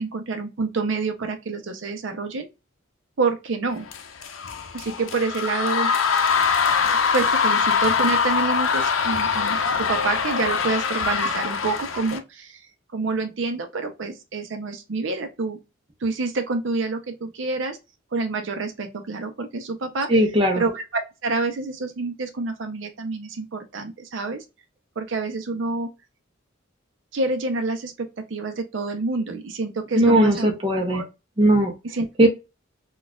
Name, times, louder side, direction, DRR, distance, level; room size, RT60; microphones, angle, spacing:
voice 1, 0.0-2.5 3.2-3.9 4.7-5.9 7.1-12.7 12.9-15.6 16.0-17.8 18.1-20.1 20.6-24.4 25.0-25.9 27.1-30.5 30.9-31.0 31.8-32.1, right 3 dB, 65° right, 0.6 m, -27 dB
sound 1, 3.9-12.2, left 5 dB, 85° left, 0.6 m, -23 dB
voice 2, 20.1-20.6 29.9-31.0 31.4-31.7 32.2-32.3, right 1 dB, 25° right, 0.7 m, -18 dB
4.1 x 2.3 x 2.2 m
head